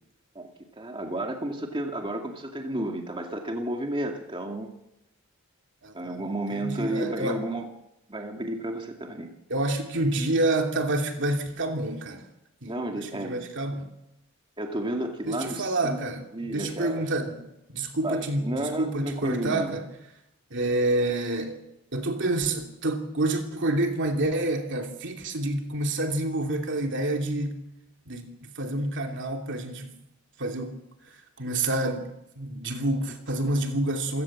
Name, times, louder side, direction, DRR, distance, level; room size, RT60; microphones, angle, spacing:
voice 1, 0.3-4.7 5.9-7.7 8.1-9.3 12.7-13.4 14.6-16.0 16.3-17.0 18.0-19.7, right 1 dB, 25° right, 2.3 m, -32 dB
voice 2, 5.8-7.4 9.5-12.3 12.6-13.9 15.2-19.9 20.5-21.6 21.9-27.7 28.1-30.0 30.4-32.1 32.4-34.2, right 2 dB, 55° right, 2.9 m, -28 dB
28.0 x 17.0 x 7.5 m
head